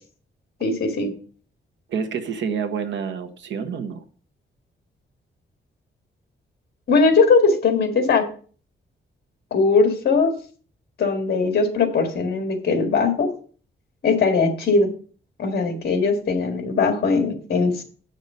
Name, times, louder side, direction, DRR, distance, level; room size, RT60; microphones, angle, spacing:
voice 1, 0.6-1.1 6.9-8.3 9.5-10.3 11.0-13.3 14.0-14.9 15.4-17.8, left 4 dB, 55° left, 6 dB, 1.9 m, -20 dB
voice 2, 1.9-4.0, right 6 dB, 70° right, 6 dB, 1.2 m, -28 dB
8.0 x 6.6 x 5.5 m, 0.42 s
wide cardioid pair, 175°, 20 cm